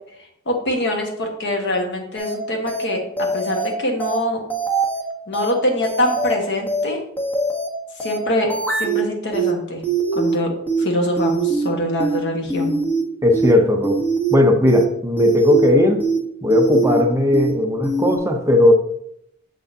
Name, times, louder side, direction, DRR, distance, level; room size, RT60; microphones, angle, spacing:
voice 1, 0.5-4.4 5.3-7.0 8.0-8.5 8.8-9.8 10.1-10.5 10.8-12.8, left 1 dB, 55° left, 2 dB, 1.3 m, -23 dB
sound 1, 2.2-2.4 2.7-2.9 3.2-3.7 4.0-4.2 4.5-5.0 5.3-5.5 5.8-6.4 6.7-6.9 7.2-7.7 8.0-8.2 8.5-9.0 9.3-9.5 9.8-10.4 10.7-10.9 11.2-11.7 12.0-12.2 12.5-13.0 13.3-13.5 13.8-14.4 14.7-14.9 15.2-15.7 16.0-16.2 16.5-17.0 17.3-17.5 17.8-18.2, right 4 dB, 10° left, 1.0 m, -22 dB
voice 2, 13.2-14.0 14.3-16.0 16.4-18.7, left 1 dB, 15° right, 3 dB, 0.6 m, -16 dB
6.9 x 6.1 x 2.7 m, 0.73 s
head